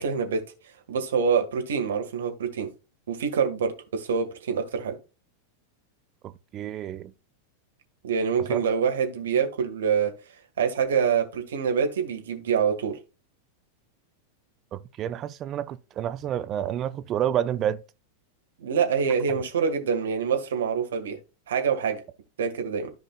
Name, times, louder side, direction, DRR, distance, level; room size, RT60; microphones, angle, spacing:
voice 1, 0.0-2.7 3.1-4.9 8.0-13.0 18.6-21.2 21.5-22.0 22.4-22.9, right 6 dB, 65° right, 1.8 m, -26 dB
voice 2, 6.5-7.1 8.5-8.6 14.7-17.8, right 10 dB, 30° right, 0.5 m, -29 dB
13.5 x 5.2 x 2.4 m
figure-of-eight pair, 90°, 0 cm